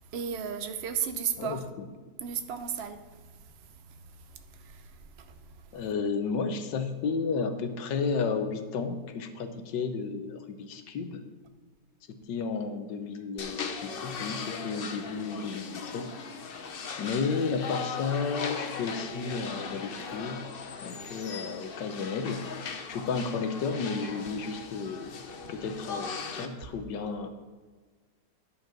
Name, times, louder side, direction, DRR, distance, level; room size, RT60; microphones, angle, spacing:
voice 1, 0.0-1.6 2.2-5.8, right 7 dB, 60° right, 0.6 m, -36 dB
voice 2, 5.7-11.2 12.1-16.1 17.0-20.5 20.8-22.4 22.9-25.2 25.5-27.3, left 5 dB, 80° left, 1.5 m, -32 dB
sound 1, 13.4-26.5, left 5 dB, 60° left, 0.6 m, -39 dB
10.5 x 5.1 x 5.8 m
omnidirectional pair, 1.9 m